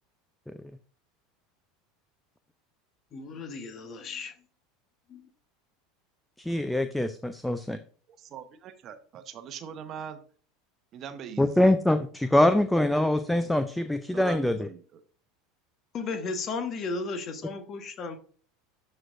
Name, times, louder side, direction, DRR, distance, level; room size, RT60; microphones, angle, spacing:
voice 1, 3.1-4.3 5.1-5.2 15.9-18.2, left 4 dB, 40° left, 1.3 m, -34 dB
voice 2, 6.4-7.8 11.4-14.7, left 1 dB, 5° left, 0.5 m, -24 dB
voice 3, 8.2-10.2 10.9-11.7 14.1-15.0, right 8 dB, 40° right, 0.9 m, -42 dB
12.5 x 4.5 x 2.6 m
figure-of-eight pair, 75°, 0 cm